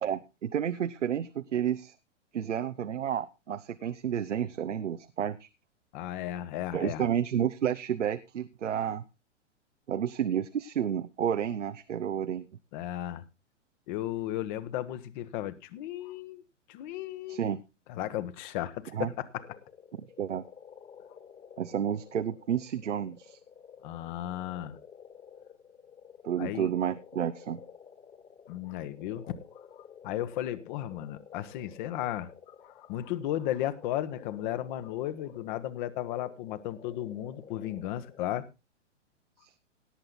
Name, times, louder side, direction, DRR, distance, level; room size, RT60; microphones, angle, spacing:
voice 1, 0.0-1.9 2.3-5.5 6.7-9.0 9.9-12.4 17.3-17.6 18.9-19.1 20.2-20.4 21.6-23.4 26.2-27.6 39.4-39.6, right 9 dB, 80° right, 11 dB, 0.8 m, -31 dB
voice 2, 5.9-7.1 12.7-13.2 13.9-16.4 16.7-17.4 17.9-19.3 23.8-24.8 26.4-26.7 28.5-29.2 29.7-32.3 32.6-38.5, left 13 dB, 40° left, 14 dB, 1.2 m, -35 dB
sound 1, 19.4-38.4, left 7 dB, 20° left, 1.7 m, -52 dB
17.5 x 7.8 x 3.8 m, 0.27 s
figure-of-eight pair, 115°, 36 cm